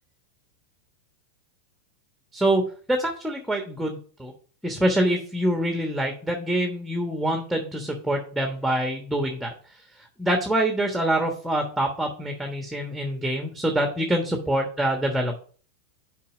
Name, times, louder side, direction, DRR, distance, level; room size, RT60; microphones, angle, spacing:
voice 1, 2.9-4.3 4.6-9.5 10.2-15.4, right 1 dB, 5° right, 3 dB, 1.3 m, -25 dB
7.4 x 4.9 x 4.9 m, 0.43 s
figure-of-eight pair, 95°, 0 cm